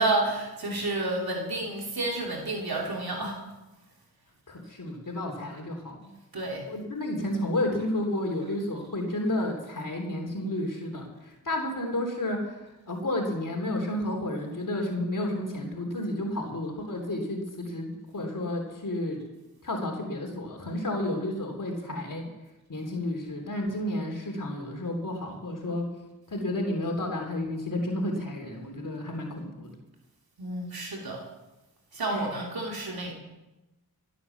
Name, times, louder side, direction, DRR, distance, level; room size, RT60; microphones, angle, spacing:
voice 1, 0.0-3.4 6.3-6.6 30.4-31.2 31.9-33.1, right 2 dB, 75° right, -1 dB, 2.9 m, -30 dB
voice 2, 4.5-6.1 6.7-12.6 12.9-19.2 19.6-22.3 22.7-25.9 26.3-29.7 32.1-32.3, left 1 dB, 55° left, 2 dB, 3.3 m, -31 dB
16.5 x 8.5 x 7.1 m, 1.0 s
wide cardioid pair, 60°, 37 cm